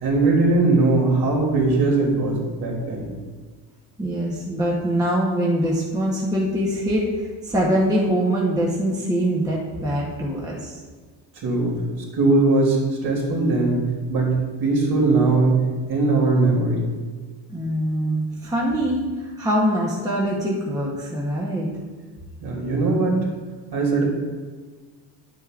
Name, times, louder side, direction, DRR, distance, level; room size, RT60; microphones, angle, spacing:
voice 1, 0.0-3.1 11.4-11.8 12.1-15.6 15.9-16.9 22.4-23.1 23.7-24.0, right 3 dB, 55° right, -2 dB, 2.8 m, -20 dB
voice 2, 4.0-10.8 17.5-19.1 19.4-21.7, equal, 10° right, -4 dB, 0.9 m, -23 dB
10.5 x 9.1 x 2.4 m, 1.4 s
cardioid pair, 175°, 45 cm